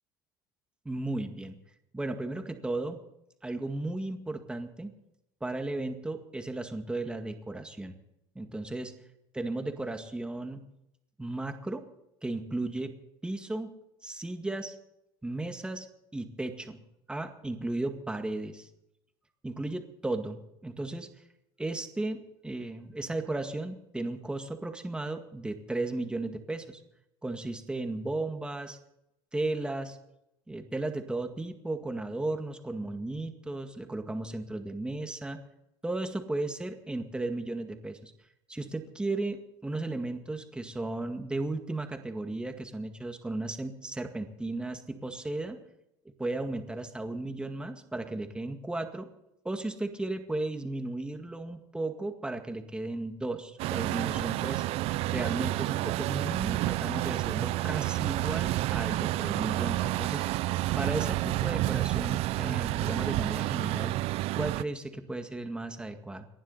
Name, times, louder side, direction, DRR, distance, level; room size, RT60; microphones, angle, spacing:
voice 1, 0.9-1.6 1.9-3.0 3.4-4.9 5.4-8.0 8.4-8.9 9.3-10.6 11.2-11.9 12.2-12.9 13.2-13.7 14.0-14.8 15.2-15.9 16.1-16.8 17.1-18.7 19.4-21.1 21.6-26.8 27.2-28.8 29.3-30.0 30.5-35.4 35.8-38.1 38.5-45.6 46.1-49.1 49.4-54.6 55.1-60.2 60.8-64.0 64.3-66.2, right 2 dB, 10° right, 6 dB, 2.0 m, -35 dB
Truck, 53.6-64.6, right 17 dB, 60° right, 0.6 m, -29 dB
30.0 x 11.5 x 4.2 m, 0.83 s
supercardioid pair, 120°, 12 cm